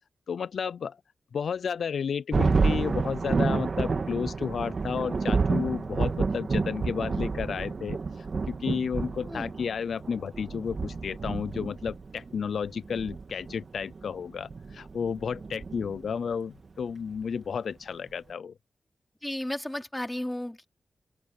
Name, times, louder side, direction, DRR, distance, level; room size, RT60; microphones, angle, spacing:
voice 1, 0.3-1.0 1.3-8.0 8.5-18.5, left 6 dB, 85° left, 0.4 m, -32 dB
Thunder, 2.3-16.3, right 4 dB, 50° right, 2.0 m, -29 dB
voice 2, 19.2-20.7, left 1 dB, 10° left, 3.5 m, -33 dB
open air
wide cardioid pair, 120°, 0 cm